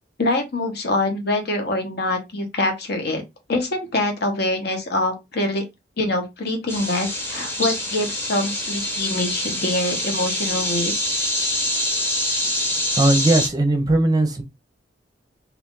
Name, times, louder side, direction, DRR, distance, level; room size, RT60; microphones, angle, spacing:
voice 1, 0.2-3.2 3.5-5.6 6.0-10.9, left 2 dB, 60° left, 0.9 m, -24 dB
sound 1, 6.7-13.5, left 1 dB, 15° left, 0.8 m, -25 dB
voice 2, 12.9-14.4, right 2 dB, 20° right, 0.6 m, -18 dB
2.5 x 2.4 x 3.6 m
head